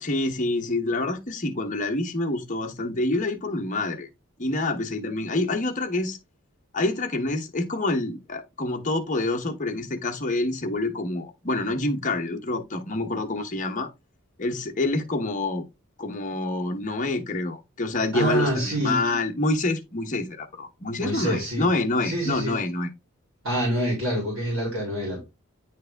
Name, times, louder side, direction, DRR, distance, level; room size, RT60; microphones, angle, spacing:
voice 1, 0.0-4.1 4.4-6.2 6.7-13.9 14.4-15.6 16.0-22.9, left 2 dB, 35° left, 0.9 m, -27 dB
voice 2, 18.1-19.0 21.0-21.7 22.0-22.5 23.4-25.2, right 1 dB, 70° right, 3.0 m, -26 dB
9.0 x 3.3 x 3.4 m
head